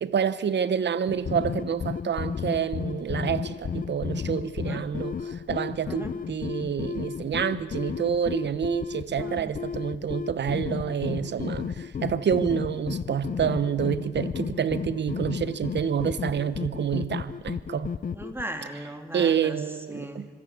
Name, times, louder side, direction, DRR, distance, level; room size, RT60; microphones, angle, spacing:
voice 1, 0.0-17.9 19.1-20.3, right 8 dB, 75° right, 1.0 m, -28 dB
sound 1, 1.1-18.4, left 6 dB, 50° left, 0.6 m, -33 dB
voice 2, 9.2-9.5 18.1-19.6 19.9-20.2, right 1 dB, 10° right, 3.2 m, -37 dB
25.0 x 17.0 x 8.4 m
cardioid pair, 60°, 18 cm